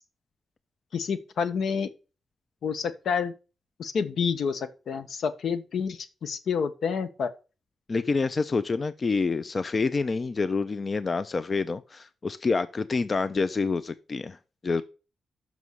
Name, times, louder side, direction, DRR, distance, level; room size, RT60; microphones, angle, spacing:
voice 1, 0.9-1.9 2.6-3.3 3.8-7.3, left 6 dB, 80° left, 0.8 m, -29 dB
voice 2, 7.9-14.4 14.6-14.8, left 4 dB, 40° left, 0.4 m, -27 dB
6.1 x 5.5 x 6.4 m
cardioid pair, 95°, 0 cm